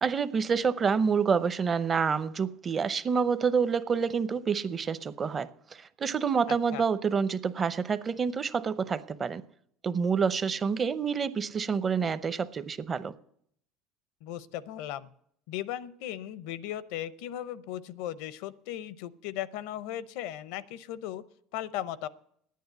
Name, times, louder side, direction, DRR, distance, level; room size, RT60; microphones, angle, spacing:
voice 1, 0.0-5.5 5.8-9.4 9.8-13.1, right 6 dB, 30° right, 0.7 m, -28 dB
voice 2, 6.5-6.8 14.2-15.1 15.5-21.2 21.5-22.1, left 12 dB, 75° left, 0.6 m, -37 dB
10.5 x 9.4 x 8.1 m
supercardioid pair, 95°, 0 cm